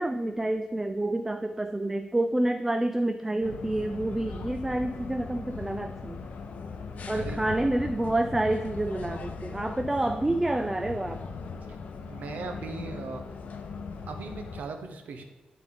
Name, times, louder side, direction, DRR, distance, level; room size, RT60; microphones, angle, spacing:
voice 1, 0.0-6.2 7.1-11.2, right 1 dB, 15° right, 7 dB, 0.3 m, -28 dB
sound 1, 3.4-14.6, left 4 dB, 65° left, 0.7 m, -39 dB
voice 2, 7.1-7.5 12.1-13.3 14.1-15.2, right 4 dB, 80° right, 5 dB, 1.0 m, -38 dB
11.0 x 4.2 x 3.7 m, 1.2 s
wide cardioid pair, 115°, 3 cm